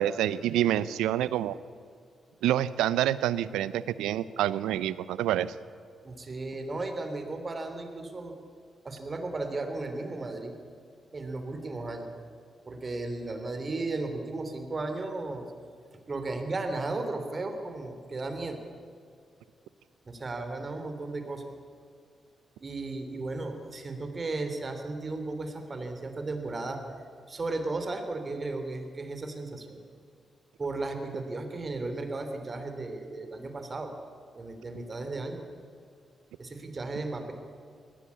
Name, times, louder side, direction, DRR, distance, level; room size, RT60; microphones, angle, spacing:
voice 1, 0.0-1.6 2.4-5.5, right 12 dB, 90° right, 17 dB, 0.6 m, -27 dB
voice 2, 6.0-8.4 8.8-10.5 11.1-12.1 12.6-15.5 16.1-18.6 20.0-21.4 22.6-26.8 27.3-29.8 30.6-33.9 34.3-35.4 36.4-37.3, right 2 dB, 40° right, 6 dB, 3.4 m, -35 dB
20.0 x 16.0 x 8.5 m, 2.3 s
supercardioid pair, 55°, 0 cm